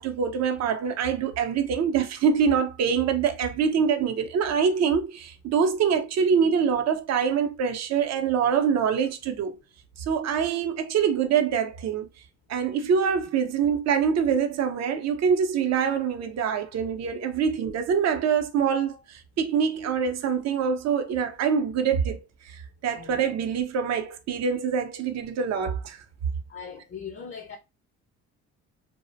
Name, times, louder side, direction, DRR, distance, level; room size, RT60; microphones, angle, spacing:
voice 1, 0.0-9.6 10.0-12.1 12.5-26.0, right 7 dB, 60° right, 0.5 m, -25 dB
voice 2, 26.5-27.6, left 6 dB, 40° left, 0.4 m, -39 dB
2.4 x 2.0 x 2.5 m
cardioid pair, 90°, 30 cm